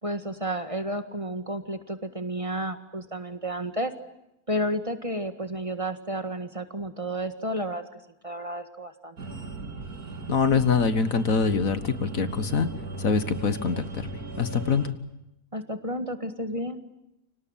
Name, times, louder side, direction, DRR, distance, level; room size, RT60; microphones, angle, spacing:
voice 1, 0.0-3.9 4.5-7.8 8.2-9.2 15.5-16.8, equal, 20° right, 8 dB, 1.8 m, -31 dB
sound 1, 9.2-14.9, right 3 dB, 85° right, 2.7 m, -37 dB
voice 2, 10.3-12.7 13.0-13.8 14.4-15.0, left 5 dB, 65° left, 12 dB, 1.8 m, -24 dB
30.0 x 25.5 x 7.5 m, 0.88 s
omnidirectional pair, 1.6 m